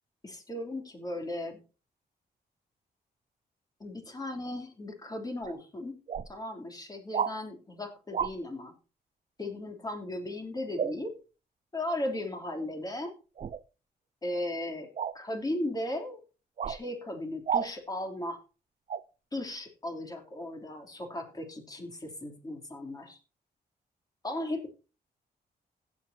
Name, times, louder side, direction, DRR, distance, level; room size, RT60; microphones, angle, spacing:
voice 1, 0.2-1.6 3.8-6.0 6.2-8.7 9.4-11.1 11.7-13.1 14.2-14.9 15.1-16.2 16.7-18.4 19.3-23.2 24.2-24.7, left 1 dB, 25° left, 3 dB, 3.1 m, -36 dB
sound 1, 5.4-5.5 6.1-6.3 7.1-7.3 8.1-8.3 10.8-11.0 13.4-13.6 14.9-15.2 16.6-16.8 17.5-17.7 18.9-19.0, right 7 dB, 45° right, 0.6 m, -31 dB
16.5 x 8.1 x 2.8 m, 0.33 s
cardioid pair, 105°, 16 cm